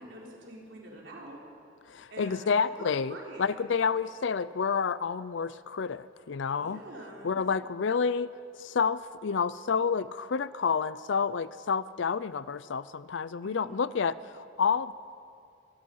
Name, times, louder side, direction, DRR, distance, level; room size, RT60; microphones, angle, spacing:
voice 1, 0.0-1.4 2.1-3.6 6.5-7.4 13.4-14.0, right 1 dB, 70° right, -2 dB, 4.6 m, -46 dB
voice 2, 1.9-6.8 7.2-8.3 8.6-14.9, left 6 dB, 70° left, 17 dB, 0.5 m, -29 dB
25.5 x 19.0 x 5.6 m, 2.4 s
head